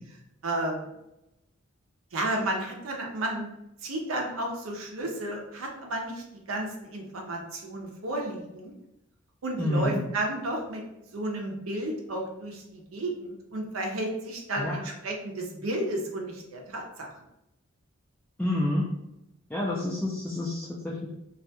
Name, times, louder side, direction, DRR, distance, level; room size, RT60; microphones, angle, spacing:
voice 1, 0.4-0.9 2.1-3.5 3.8-8.7 9.4-10.8 11.1-17.1, right 1 dB, 80° right, 1 dB, 0.6 m, -32 dB
voice 2, 9.6-10.0 14.6-14.8 18.4-18.8 19.5-21.2, left 1 dB, 5° left, -5 dB, 0.3 m, -28 dB
2.4 x 2.1 x 2.7 m, 0.88 s
head